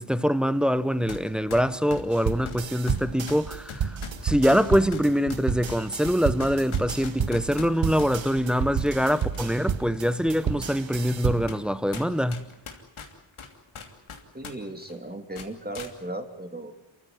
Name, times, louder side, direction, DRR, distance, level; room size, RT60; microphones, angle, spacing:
voice 1, 0.0-4.0 4.2-12.5, equal, ahead, 0.9 m, -24 dB
sound 1, 1.1-1.2 1.5-8.1 8.8-9.5 9.9-10.0 10.8-10.9 11.5-11.7 11.9-14.5 14.8-15.0 15.3-15.9, left 5 dB, 85° left, 3.0 m, -40 dB
sound 2, 2.1-11.6, right 7 dB, 70° right, 1.2 m, -31 dB
voice 2, 14.3-16.7, right 1 dB, 20° right, 3.2 m, -36 dB
28.0 x 15.5 x 9.5 m
wide cardioid pair, 80°, 48 cm